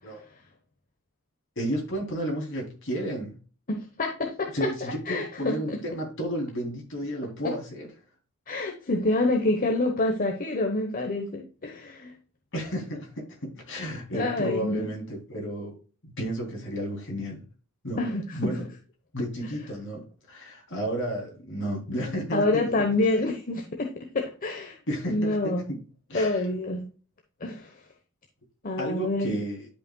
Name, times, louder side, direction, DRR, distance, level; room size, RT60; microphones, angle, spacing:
voice 1, 1.6-3.4 4.5-7.9 12.5-15.8 16.0-17.4 17.8-18.0 18.3-18.7 19.1-22.6 24.9-25.8 26.1-26.4 28.8-29.7, right 1 dB, 55° left, 0 dB, 3.1 m, -32 dB
voice 2, 3.7-5.8 8.5-12.1 14.1-14.9 18.0-18.5 22.3-23.9 24.1-24.8 25.1-25.6 26.1-26.8 27.4-27.7 28.6-29.4, left 2 dB, 40° left, 3 dB, 1.0 m, -27 dB
11.5 x 5.3 x 2.3 m, 0.37 s
head